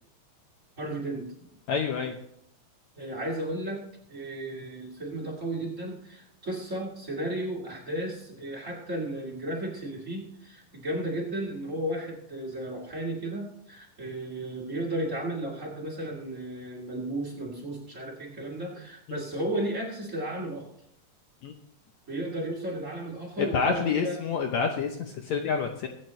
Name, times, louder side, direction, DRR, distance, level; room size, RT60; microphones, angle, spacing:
voice 1, 0.8-1.3 3.0-20.7 22.1-24.2, right 1 dB, 25° right, 0 dB, 2.5 m, -34 dB
voice 2, 1.7-2.1 19.1-19.2 21.4-21.5 23.4-25.9, left 6 dB, 70° left, 4 dB, 1.9 m, -28 dB
22.5 x 9.0 x 3.2 m, 0.73 s
omnidirectional pair, 3.8 m